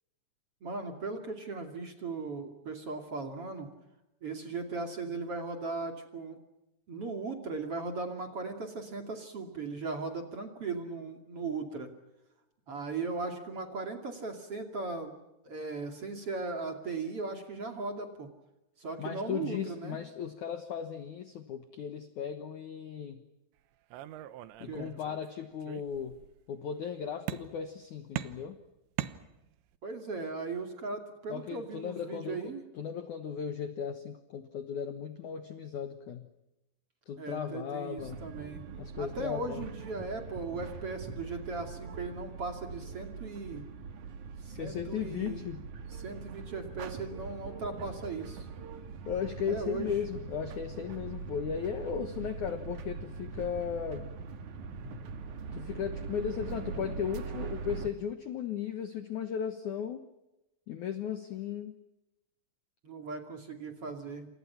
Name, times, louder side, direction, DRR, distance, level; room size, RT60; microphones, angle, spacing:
voice 1, 0.6-3.7 4.2-6.4 6.9-11.9 12.7-15.1 15.4-18.3 18.8-20.0 24.7-24.9 29.8-32.6 37.2-38.6 39.0-43.6 44.4-45.4 45.9-48.5 49.5-49.9 62.8-64.3, right 3 dB, 40° right, 5 dB, 2.6 m, -38 dB
voice 2, 19.0-23.2 24.6-26.2 26.5-28.6 31.3-36.3 37.1-38.3 38.8-39.7 44.5-45.7 49.0-54.1 55.5-60.1 60.7-61.8, left 8 dB, 85° left, 9 dB, 1.7 m, -36 dB
sound 1, 23.9-25.3 25.6-26.3 27.3-27.8 28.2-29.8, right 13 dB, 75° right, 3.2 m, -40 dB
sound 2, 38.0-57.9, right 5 dB, 55° right, 2.3 m, -42 dB
28.5 x 27.5 x 5.9 m, 0.94 s
omnidirectional pair, 5.6 m